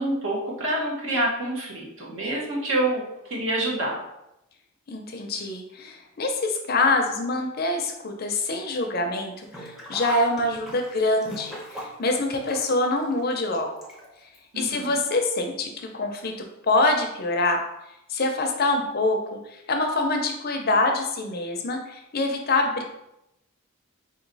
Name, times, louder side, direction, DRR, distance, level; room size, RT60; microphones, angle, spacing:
voice 1, 0.0-3.0 3.3-4.0 14.5-15.0, right 1 dB, 60° right, -3 dB, 1.2 m, -27 dB
voice 2, 4.9-13.7 14.5-16.3 16.7-17.6 18.1-19.4 19.7-22.8, left 2 dB, 45° left, 4 dB, 0.5 m, -25 dB
Sink (filling or washing), 9.4-14.4 14.7-14.8 15.8-15.9 16.2-16.3, equal, ahead, 0.7 m, -40 dB
4.1 x 3.0 x 4.0 m, 0.86 s
head